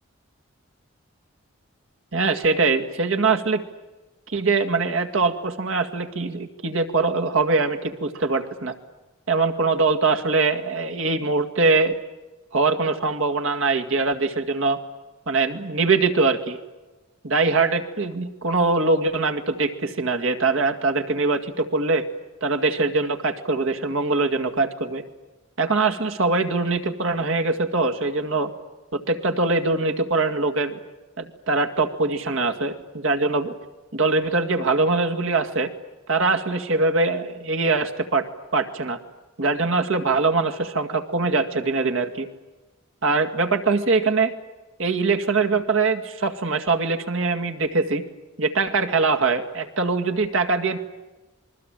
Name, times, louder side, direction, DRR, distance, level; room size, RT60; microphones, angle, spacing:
voice 1, 2.1-3.6 4.3-8.8 9.3-11.9 12.5-14.8 15.3-16.6 17.2-22.1 22.4-25.0 25.6-28.5 28.9-30.7 31.2-33.5 33.9-35.7 36.1-38.3 38.5-39.0 39.4-42.3 43.0-44.3 44.8-48.0 48.4-50.8, right 3 dB, 70° right, 5 dB, 2.1 m, -22 dB
27.5 x 22.5 x 9.0 m, 1.1 s
head